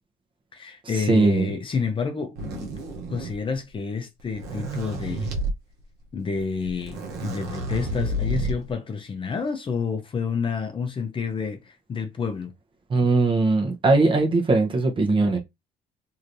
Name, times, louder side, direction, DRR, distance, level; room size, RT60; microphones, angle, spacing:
voice 1, 0.5-2.7 3.1-5.3 6.1-12.5, left 5 dB, 30° left, 0.6 m, -29 dB
voice 2, 1.1-1.5 12.9-15.4, right 3 dB, 30° right, 0.8 m, -20 dB
sound 1, 2.3-3.5 4.2-5.5 6.4-6.5 6.7-8.7, right 1 dB, 80° right, 0.9 m, -30 dB
3.1 x 2.8 x 2.6 m
cardioid pair, 110°, 17 cm